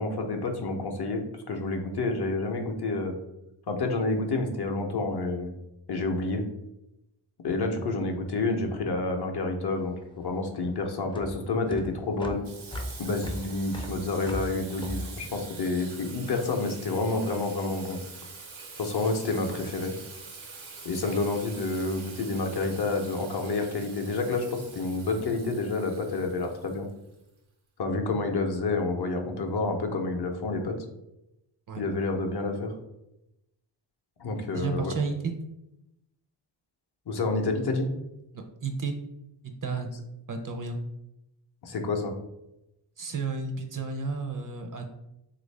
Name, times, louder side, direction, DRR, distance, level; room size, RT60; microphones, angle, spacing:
voice 1, 0.0-3.2 3.7-5.5 5.9-6.4 7.4-12.4 13.0-18.0 18.8-19.9 20.8-26.9 27.8-30.8 31.8-32.7 34.2-34.9 37.1-37.9 41.6-42.1, left 3 dB, 55° left, 4 dB, 0.6 m, -29 dB
sound 1, 9.8-16.3, equal, 10° left, 0.4 m, -39 dB
Water tap faucet / Sink (filling or washing), 12.4-27.2, right 4 dB, 85° right, 0.8 m, -45 dB
voice 2, 34.5-35.3 38.3-39.0 39.6-39.9 40.3-40.8 43.0-44.9, right 4 dB, 45° right, 4 dB, 0.5 m, -32 dB
3.4 x 2.5 x 3.2 m, 0.87 s
wide cardioid pair, 85°, 47 cm